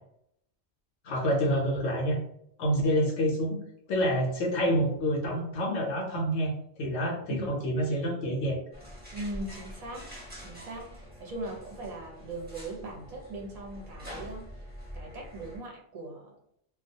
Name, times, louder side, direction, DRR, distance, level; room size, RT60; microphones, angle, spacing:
voice 1, 1.0-2.2 2.6-3.6 3.9-6.5 6.8-8.6, equal, 85° left, -2 dB, 0.9 m, -27 dB
sound 1, 8.7-15.6, equal, 10° right, 0.8 m, -45 dB
voice 2, 9.1-10.1 10.4-14.5 14.9-16.3, right 2 dB, 45° right, -1 dB, 0.7 m, -40 dB
2.2 x 2.2 x 2.6 m, 0.73 s
omnidirectional pair, 1.1 m